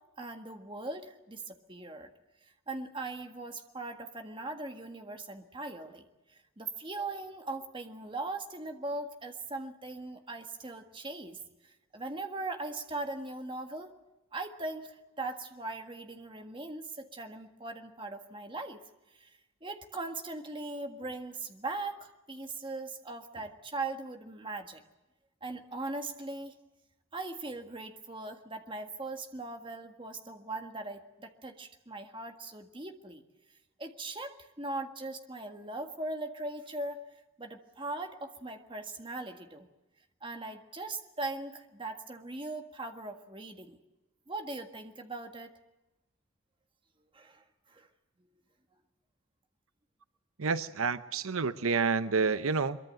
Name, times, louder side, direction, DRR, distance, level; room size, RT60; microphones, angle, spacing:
voice 1, 0.2-2.1 2.4-13.9 14.3-18.8 19.1-24.8 25.4-26.6 27.1-33.2 33.8-37.0 37.4-39.7 40.2-43.8 44.3-45.5 47.1-47.9, right 2 dB, 25° right, 5 dB, 1.7 m, -40 dB
voice 2, 50.4-52.8, right 4 dB, 85° right, 13 dB, 0.8 m, -29 dB
23.5 x 23.0 x 7.7 m, 1.0 s
head